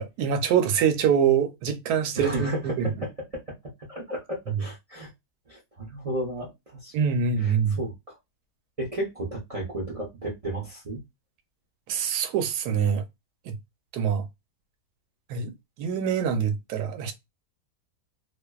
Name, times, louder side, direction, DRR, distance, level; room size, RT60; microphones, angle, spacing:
voice 1, 0.0-2.9 6.9-7.8 11.9-13.0 13.5-13.6 13.9-14.3 15.3-15.5 15.8-17.1, right 7 dB, 85° right, 1.1 m, -24 dB
voice 2, 2.1-3.5 3.9-5.1 5.5-6.9 7.4-8.2 8.8-11.0, right 1 dB, 45° right, 0.4 m, -33 dB
2.5 x 2.3 x 2.2 m
omnidirectional pair, 1.7 m